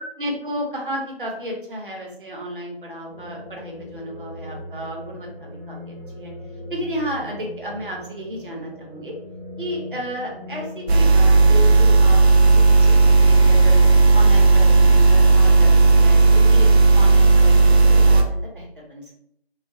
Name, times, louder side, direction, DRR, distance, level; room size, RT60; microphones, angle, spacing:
voice 1, 0.0-6.3 6.7-9.1 9.6-12.2 12.5-13.8 14.1-16.7 16.9-19.1, equal, 55° right, -1 dB, 0.8 m, -33 dB
sound 1, 3.1-11.1, left 1 dB, 45° left, 0.6 m, -38 dB
sound 2, 10.9-18.2, right 3 dB, 85° right, 0.5 m, -13 dB
2.3 x 2.2 x 2.5 m, 0.72 s
figure-of-eight pair, 165°, 31 cm